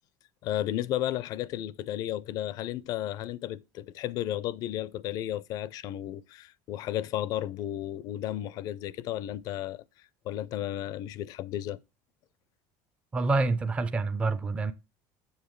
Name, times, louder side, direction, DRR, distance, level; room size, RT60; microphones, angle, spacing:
voice 1, 0.4-9.8 10.2-11.8, left 12 dB, 45° left, 0.5 m, -33 dB
voice 2, 13.1-14.7, right 3 dB, 15° right, 0.5 m, -27 dB
7.3 x 7.0 x 3.1 m
cardioid pair, 165°, 9 cm